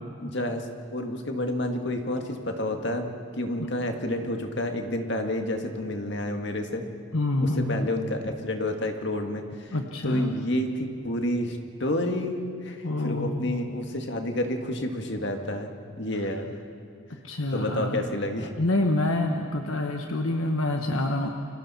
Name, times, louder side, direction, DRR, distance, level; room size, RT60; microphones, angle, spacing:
voice 1, 0.2-3.1 3.4-6.8 7.4-9.8 10.0-15.7 16.0-16.5 17.5-18.5, left 1 dB, 55° left, 4 dB, 1.9 m, -29 dB
voice 2, 7.1-7.8 9.7-10.3 12.8-13.6 17.1-18.1 18.6-21.3, left 1 dB, 80° left, 3 dB, 1.3 m, -27 dB
30.0 x 23.5 x 4.3 m, 2.3 s
head